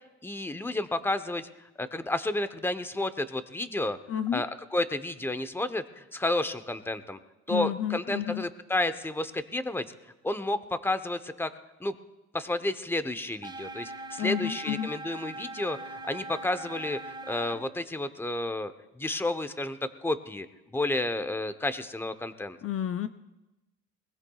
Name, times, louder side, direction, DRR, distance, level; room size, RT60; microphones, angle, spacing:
voice 1, 0.2-1.5 1.8-4.0 4.3-7.2 7.5-11.5 11.8-12.0 12.3-22.6, left 2 dB, 5° left, 10 dB, 0.8 m, -31 dB
voice 2, 4.1-4.4 7.5-8.4 14.2-14.9 22.6-23.1, left 10 dB, 50° left, 11 dB, 0.5 m, -30 dB
sound 1, 13.4-17.5, right 2 dB, 15° right, 1.7 m, -41 dB
22.5 x 20.5 x 2.4 m, 1.0 s
cardioid pair, 90°, 30 cm